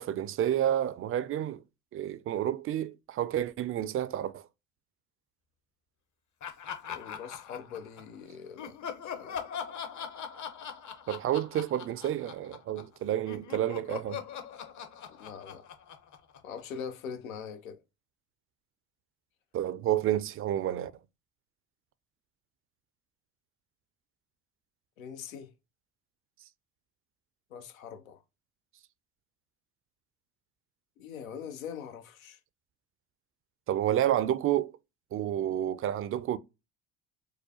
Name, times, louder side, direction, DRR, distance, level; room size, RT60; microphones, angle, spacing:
voice 1, 0.0-1.6 1.9-4.4 11.1-14.2 19.5-20.9 33.7-34.7 35.1-36.4, right 11 dB, 35° right, 0.4 m, -30 dB
Laughter, 6.4-8.2 8.6-13.0 13.3-16.8, left 7 dB, 45° left, 0.9 m, -41 dB
voice 2, 6.9-8.8 9.0-9.4 15.2-15.6 16.4-17.8 25.0-25.5 27.5-28.2 31.0-32.4, left 7 dB, 85° left, 0.7 m, -42 dB
4.7 x 2.1 x 2.8 m
hypercardioid pair, 65°, 40 cm